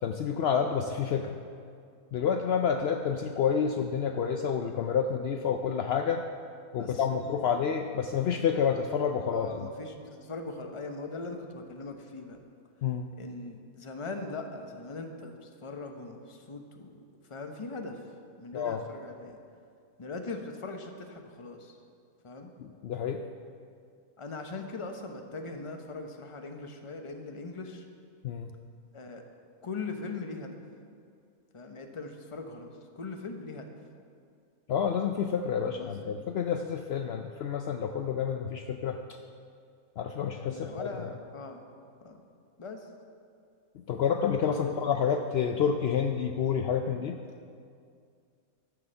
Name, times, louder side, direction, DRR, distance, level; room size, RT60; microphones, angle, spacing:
voice 1, 0.0-1.3 2.1-6.2 6.7-9.7 12.8-13.1 18.5-18.8 22.6-23.2 28.2-28.5 34.7-39.0 40.0-41.1 43.9-47.2, left 7 dB, 75° left, 5 dB, 0.5 m, -29 dB
voice 2, 6.8-7.6 9.3-12.4 13.2-17.0 17.3-18.0 18.4-19.4 20.0-21.7 22.2-22.5 24.2-27.9 28.9-29.2 29.6-30.5 31.5-33.7 35.6-36.2 40.4-41.6 42.0-42.2 42.6-42.9 44.5-44.7, left 3 dB, 25° left, 4 dB, 0.7 m, -40 dB
12.0 x 7.0 x 6.8 m, 2.3 s
omnidirectional pair, 1.7 m